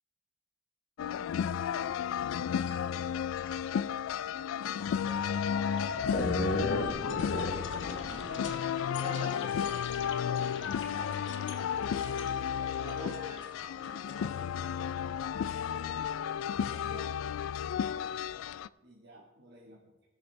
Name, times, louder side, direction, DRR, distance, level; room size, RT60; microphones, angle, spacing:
sound 1, 1.0-18.7, left 8 dB, 85° left, 0.3 m, -33 dB
sound 2, 2.7-3.0 3.4-3.8 4.2-4.3 5.1-14.2, left 2 dB, 65° left, 1.1 m, -37 dB
voice 1, 5.0-5.5 8.2-8.6 9.0-9.3 9.6-9.7 10.1-10.4 12.8-13.4 13.8-14.5 17.9-18.1, equal, 30° right, -3 dB, 3.1 m, -49 dB
voice 2, 6.4-8.6 8.9-9.8 10.9-12.2 12.8-13.3 16.4-17.1 18.8-19.9, right 1 dB, 55° right, -3 dB, 1.5 m, -48 dB
20.0 x 6.7 x 3.3 m, 1.1 s
head